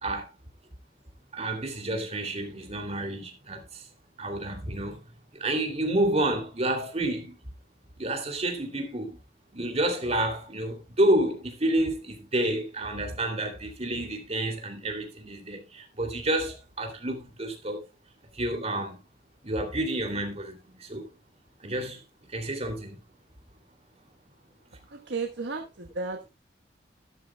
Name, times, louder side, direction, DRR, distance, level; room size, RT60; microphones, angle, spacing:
voice 1, 1.3-3.9 4.2-5.0 5.3-7.3 8.0-9.2 9.5-17.8 18.3-19.0 19.4-21.1 21.6-22.0 22.3-23.0, right 1 dB, 35° right, 2.7 m, -29 dB
voice 2, 25.1-26.3, right 4 dB, 75° right, 1.2 m, -33 dB
12.5 x 12.5 x 2.2 m
head